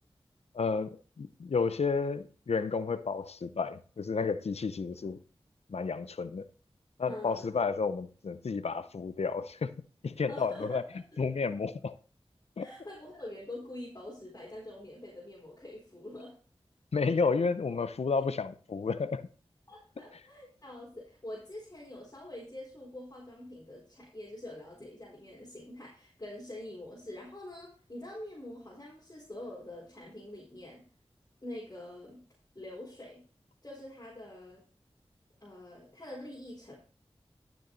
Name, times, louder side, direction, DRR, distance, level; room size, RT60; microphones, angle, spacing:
voice 1, 0.5-5.2 5.7-6.5 7.0-9.7 10.0-10.8 11.2-12.0 12.6-12.7 16.9-19.3, left 4 dB, 90° left, 0.7 m, -31 dB
voice 2, 7.0-7.5 10.3-10.8 12.6-16.4 18.2-18.3 19.7-30.8 31.4-32.2 32.5-33.2 33.6-34.6 35.4-36.8, left 1 dB, 35° left, 4.3 m, -45 dB
12.0 x 7.1 x 4.0 m
wide cardioid pair, 55°, 10 cm